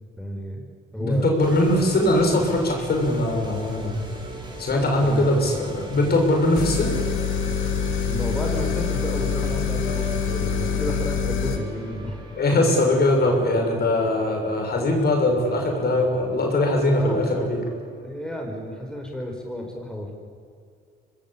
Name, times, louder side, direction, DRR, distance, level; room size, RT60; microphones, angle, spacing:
voice 1, 0.2-1.3 5.0-6.1 8.1-12.2 16.9-17.6 18.0-20.1, equal, 5° left, 1 dB, 4.8 m, -32 dB
voice 2, 1.0-4.0 4.6-7.0 12.4-17.6, left 1 dB, 55° left, 2 dB, 6.7 m, -21 dB
sound 1, 1.4-19.0, right 1 dB, 20° right, 6.6 m, -39 dB
sound 2, 6.5-11.6, left 6 dB, 85° left, 2.5 m, -25 dB
25.0 x 20.0 x 8.8 m, 2.3 s
cardioid pair, 90°, 20 cm